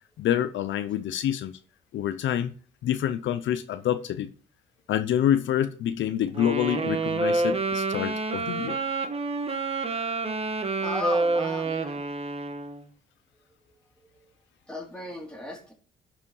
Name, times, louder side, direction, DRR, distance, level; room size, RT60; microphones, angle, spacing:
voice 1, 0.2-1.6 1.9-2.5 2.8-4.3 4.9-8.8, left 10 dB, 70° left, 0.7 m, -27 dB
Wind instrument woodwind instrument, 6.3-12.8, right 3 dB, 30° right, 1.3 m, -28 dB
voice 2, 10.8-12.1 14.7-15.7, left 2 dB, 5° left, 3.1 m, -36 dB
11.5 x 5.0 x 4.8 m
cardioid pair, 90°, 20 cm